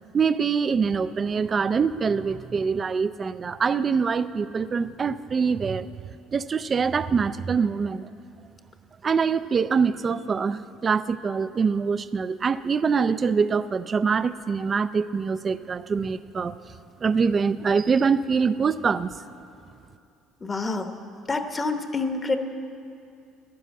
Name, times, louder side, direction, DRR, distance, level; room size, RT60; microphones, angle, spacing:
voice 1, 0.1-5.9 6.3-8.1 9.0-16.5 17.0-19.1, right 5 dB, 30° right, 14 dB, 0.4 m, -24 dB
voice 2, 20.4-20.9 21.3-22.4, left 3 dB, 20° left, 7 dB, 1.0 m, -27 dB
12.5 x 10.5 x 8.3 m, 2.5 s
cardioid pair, 115°, 0 cm